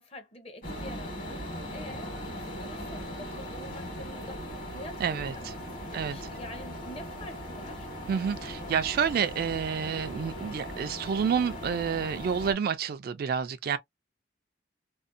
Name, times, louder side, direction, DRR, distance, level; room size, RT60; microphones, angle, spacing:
voice 1, 0.0-2.1 2.5-7.9, left 1 dB, 35° left, 0.7 m, -46 dB
sound 1, 0.6-12.5, equal, 50° left, 1.2 m, -39 dB
voice 2, 5.0-5.3 5.9-6.2 8.1-13.8, right 7 dB, 55° right, 0.3 m, -29 dB
2.6 x 2.0 x 2.4 m
head